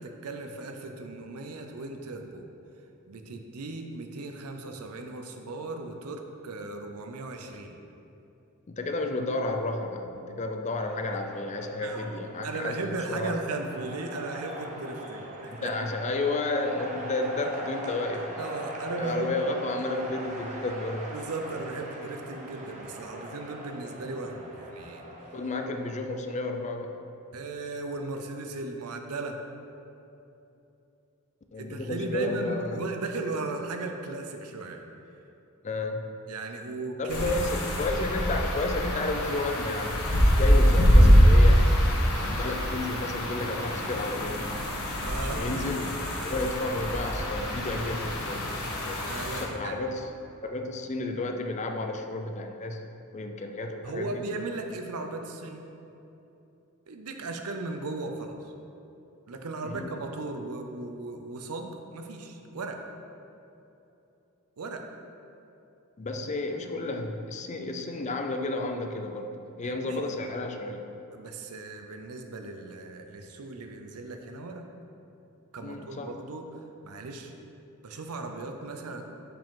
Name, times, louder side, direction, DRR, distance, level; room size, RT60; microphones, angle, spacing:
voice 1, 0.0-2.5 3.1-7.7 11.8-12.0 12.4-15.7 18.4-19.3 21.1-25.0 27.3-29.4 31.6-34.8 36.3-37.4 44.9-45.6 49.1-49.8 53.8-55.6 56.9-58.5 59.3-62.8 64.6-64.8 69.6-70.0 71.1-74.6 75.5-77.3 77.8-79.0, right 2 dB, 80° right, 4 dB, 0.6 m, -36 dB
voice 2, 8.7-13.4 15.5-18.4 19.0-21.1 25.3-26.9 31.5-32.8 35.6-36.1 37.0-41.7 42.2-44.5 45.3-50.1 50.4-52.8 53.1-54.2 59.6-59.9 66.0-70.8 75.6-76.2, left 2 dB, 30° left, 5 dB, 0.4 m, -32 dB
sound 1, 10.8-25.9, right 1 dB, 35° right, 0.9 m, -41 dB
sound 2, 37.1-49.4, equal, 75° left, 1.1 m, -24 dB
7.3 x 5.1 x 3.7 m, 2.8 s
head